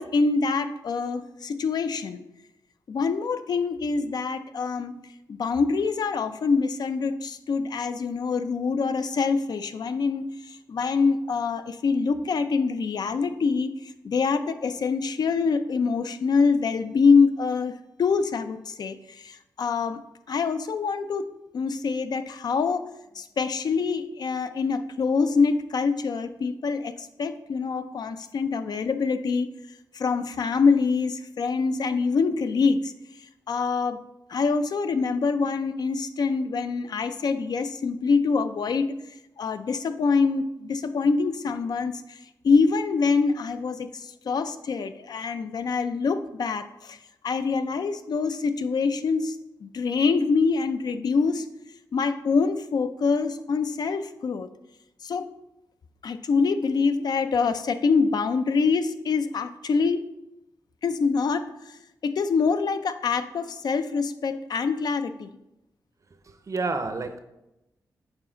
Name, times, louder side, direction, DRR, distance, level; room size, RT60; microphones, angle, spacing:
voice 1, 0.0-2.2 2.9-5.0 5.3-20.0 20.3-21.3 21.5-22.9 23.1-29.5 29.9-32.9 33.5-34.0 34.3-39.0 39.4-47.0 47.2-51.5 51.9-54.5 55.0-55.3 56.0-60.0 60.8-65.3, left 4 dB, 65° left, 10 dB, 0.4 m, -25 dB
voice 2, 66.3-67.2, right 3 dB, 50° right, 8 dB, 0.6 m, -29 dB
6.1 x 4.2 x 3.8 m, 0.91 s
cardioid pair, 75°, 7 cm